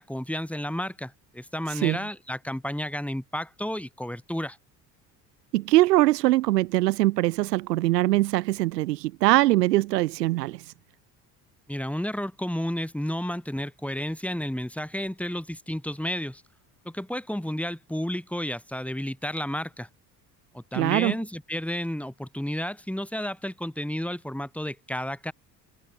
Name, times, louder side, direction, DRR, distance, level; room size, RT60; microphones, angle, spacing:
voice 1, 0.0-4.6 11.7-16.4 16.8-19.9 20.5-25.3, equal, 5° left, 4.1 m, -32 dB
voice 2, 5.5-10.6 20.7-21.1, right 17 dB, 75° right, 0.9 m, -22 dB
figure-of-eight pair, 55°, 50 cm